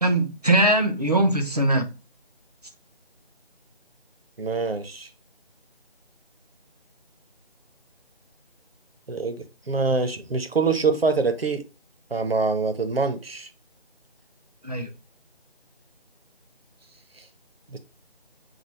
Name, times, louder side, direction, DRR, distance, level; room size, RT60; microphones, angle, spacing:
voice 1, 0.0-1.9 14.6-14.9, right 1 dB, 40° right, 0.6 m, -21 dB
voice 2, 4.4-5.1 9.1-11.6 12.1-13.5 17.7-17.8, right 4 dB, 70° right, 0.9 m, -25 dB
6.0 x 2.4 x 3.2 m
figure-of-eight pair, 165°, 31 cm